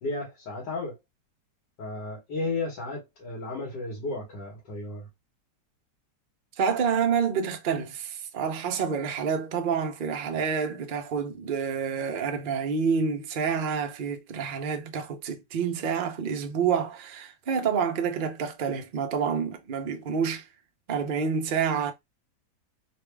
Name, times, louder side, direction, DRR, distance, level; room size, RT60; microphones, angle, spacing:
voice 1, 0.0-1.0 1.8-5.1, left 2 dB, 85° left, 2.0 m, -33 dB
voice 2, 6.6-20.5 20.9-21.9, right 6 dB, 70° right, 0.4 m, -28 dB
4.0 x 2.3 x 3.3 m
omnidirectional pair, 1.8 m